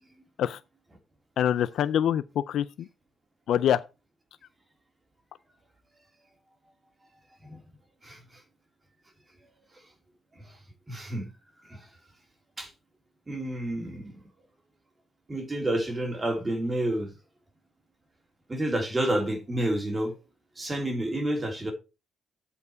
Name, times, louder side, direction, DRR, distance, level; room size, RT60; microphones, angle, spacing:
voice 1, 1.4-2.9 3.5-3.8, left 10 dB, 70° left, 0.4 m, -25 dB
voice 2, 10.9-11.3 11.6-11.9 12.6-12.7 13.3-14.2 15.3-17.1 18.5-20.1 20.6-21.7, right 1 dB, 25° right, 3.1 m, -29 dB
8.1 x 4.9 x 4.8 m
cardioid pair, 90°, 0 cm